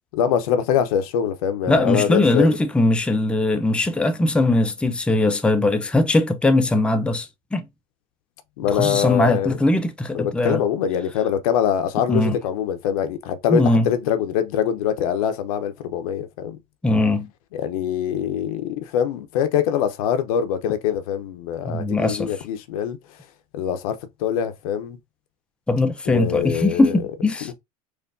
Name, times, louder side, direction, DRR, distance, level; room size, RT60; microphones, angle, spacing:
voice 1, 0.1-2.5 8.6-9.5 10.1-16.6 17.5-23.0 23.5-25.0 26.1-27.0 27.4-27.5, left 9 dB, 75° left, 0.7 m, -23 dB
voice 2, 1.7-7.6 8.7-10.6 12.1-12.4 13.5-13.9 16.8-17.3 21.7-22.4 25.7-27.5, left 2 dB, 5° left, 0.5 m, -20 dB
4.4 x 2.5 x 2.5 m
hypercardioid pair, 100°, 19 cm